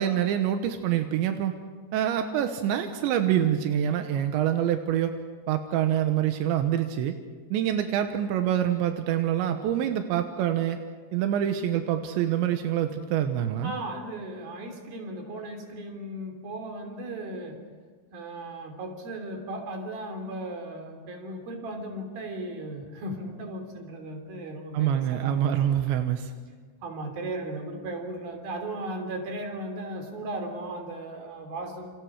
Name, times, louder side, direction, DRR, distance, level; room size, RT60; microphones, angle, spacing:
voice 1, 0.0-1.6 1.9-5.2 5.5-7.2 7.5-10.8 11.1-13.7 24.7-26.3, right 10 dB, 90° right, 6 dB, 3.4 m, -26 dB
voice 2, 13.6-17.6 18.1-25.4 26.8-31.9, right 1 dB, 60° right, 4 dB, 4.9 m, -36 dB
29.0 x 28.5 x 4.9 m, 1.5 s
omnidirectional pair, 5.1 m